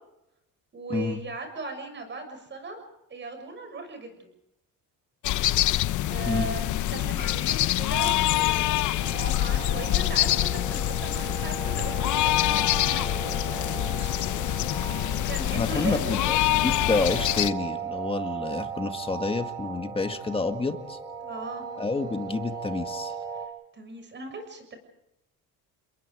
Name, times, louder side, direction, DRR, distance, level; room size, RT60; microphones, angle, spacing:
voice 1, 0.7-2.8 3.1-4.3 6.1-14.1 15.2-16.2 16.5-16.7 21.2-21.7 23.7-24.8, right 3 dB, 30° right, 6 dB, 6.8 m, -38 dB
Farm in early afternoon (Sheeps Dog Birds...), 5.2-17.5, left 14 dB, 55° left, 0.8 m, -25 dB
sound 1, 9.0-23.5, right 6 dB, 10° right, 3.8 m, -37 dB
voice 2, 15.4-21.0 21.8-23.1, left 3 dB, 15° left, 7 dB, 1.9 m, -29 dB
30.0 x 22.0 x 4.9 m, 0.86 s
cardioid pair, 145°, 35 cm